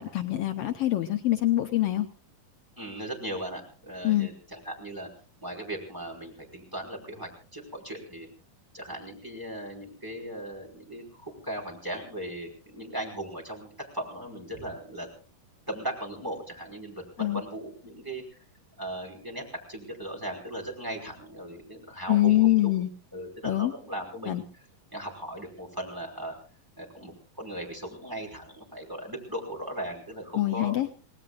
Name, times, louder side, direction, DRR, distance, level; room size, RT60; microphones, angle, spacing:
voice 1, 0.0-2.1 4.0-4.3 17.2-17.4 22.1-22.9 23.4-23.7 24.3-24.4 30.3-30.9, left 15 dB, 80° left, 6 dB, 1.3 m, -24 dB
voice 2, 2.8-5.1 5.4-8.3 8.7-15.1 15.7-18.4 18.8-22.7 23.1-24.6 24.9-26.3 26.8-30.7, right 1 dB, 5° right, 1 dB, 5.1 m, -38 dB
29.0 x 19.0 x 2.5 m, 0.38 s
omnidirectional pair, 3.9 m